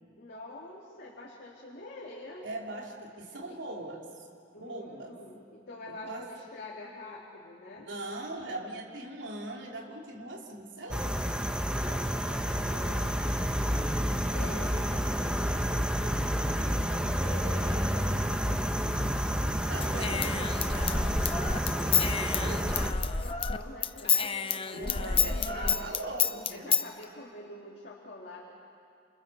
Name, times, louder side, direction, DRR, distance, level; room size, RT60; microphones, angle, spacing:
voice 1, 0.2-2.5 3.4-3.6 4.5-7.9 11.6-13.1 14.3-19.4 19.8-20.9 21.3-22.9 23.2-25.8 26.5-28.4, left 2 dB, 55° left, -4 dB, 3.4 m, -46 dB
voice 2, 2.4-4.3 4.6-5.2 5.9-6.3 7.8-11.4 13.6-14.1 14.5-14.7 19.7-20.3 22.4-22.5 24.7-26.7, right 1 dB, 80° right, -1 dB, 3.7 m, -40 dB
sound 1, 10.9-22.9, equal, 5° right, 1.2 m, -29 dB
Human voice / Scissors, 19.8-23.6 23.8-26.9, left 7 dB, 30° left, 0.8 m, -29 dB
28.5 x 28.0 x 7.2 m, 2.4 s
head